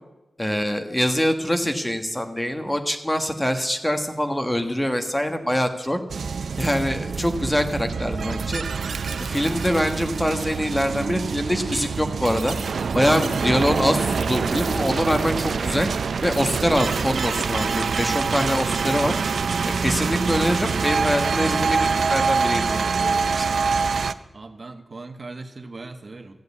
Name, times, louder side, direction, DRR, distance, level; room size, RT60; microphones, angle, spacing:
voice 1, 0.4-6.0 6.6-8.6 9.2-12.6 12.9-15.9 16.2-19.1 19.6-23.5, equal, 10° left, 6 dB, 1.4 m, -24 dB
sound 1, 6.1-24.1, right 5 dB, 85° right, 0.5 m, -25 dB
voice 2, 24.3-26.4, right 3 dB, 50° right, 6 dB, 1.2 m, -39 dB
14.5 x 7.9 x 8.3 m, 1.0 s
cardioid pair, 65°, 0 cm